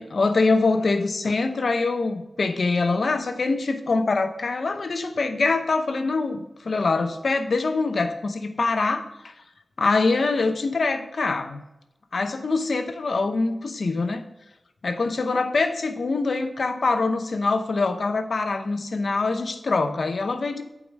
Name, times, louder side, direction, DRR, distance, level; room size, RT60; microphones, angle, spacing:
voice 1, 0.0-9.3 9.8-11.6 12.1-14.3 14.8-20.6, left 3 dB, 70° left, 8 dB, 0.8 m, -24 dB
8.4 x 4.9 x 5.3 m, 0.91 s
wide cardioid pair, 95°, 0 cm